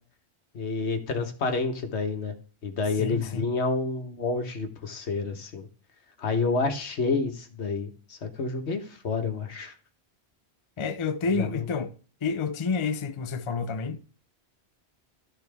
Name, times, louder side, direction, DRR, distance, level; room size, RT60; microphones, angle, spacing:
voice 1, 0.5-2.3 2.6-5.7 6.2-9.7 11.4-11.7, left 4 dB, 80° left, 1.4 m, -29 dB
voice 2, 3.0-3.5 10.8-11.9 12.2-14.1, left 4 dB, 35° left, 0.5 m, -29 dB
12.5 x 4.3 x 3.4 m
omnidirectional pair, 1.1 m